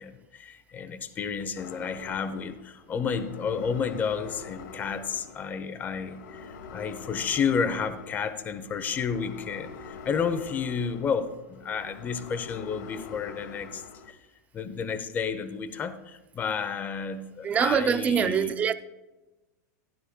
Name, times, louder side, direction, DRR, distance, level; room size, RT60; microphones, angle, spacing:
voice 1, 0.0-14.2 14.5-18.6, left 6 dB, 20° left, 0.6 m, -31 dB
sound 1, 1.6-14.1, left 5 dB, 75° left, 1.2 m, -45 dB
voice 2, 17.4-18.7, right 7 dB, 15° right, 0.3 m, -24 dB
15.0 x 11.5 x 2.2 m
supercardioid pair, 155°, 10 cm